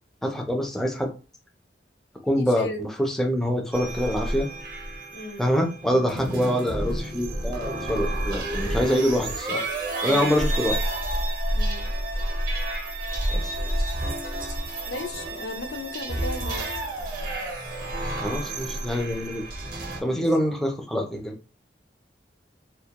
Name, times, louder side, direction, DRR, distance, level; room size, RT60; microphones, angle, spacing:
voice 1, 0.2-1.1 2.2-4.5 5.4-9.6 10.0-10.8 13.3-13.5 18.2-19.4 20.0-21.3, equal, ahead, 0.3 m, -25 dB
voice 2, 2.4-2.9 5.1-5.5 10.0-10.3 11.5-11.9 14.9-16.6 20.1-20.3, left 2 dB, 70° left, 0.4 m, -35 dB
sound 1, 3.7-20.0, right 1 dB, 50° right, 0.6 m, -30 dB
2.2 x 2.1 x 2.8 m
head